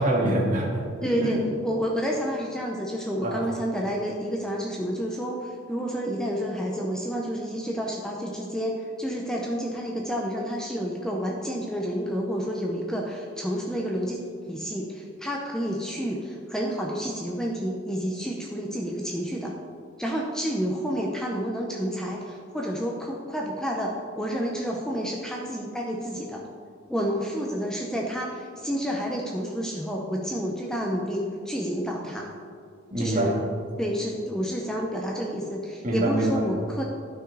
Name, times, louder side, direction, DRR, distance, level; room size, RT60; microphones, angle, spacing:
voice 1, 0.0-1.5 3.2-3.5 32.9-33.5 35.8-36.5, right 1 dB, 40° right, -3 dB, 1.9 m, -25 dB
voice 2, 1.0-19.5 20.0-26.4 26.9-32.3 33.0-33.3 33.8-36.8, equal, 5° left, -1 dB, 0.6 m, -30 dB
12.0 x 6.1 x 4.0 m, 2.2 s
head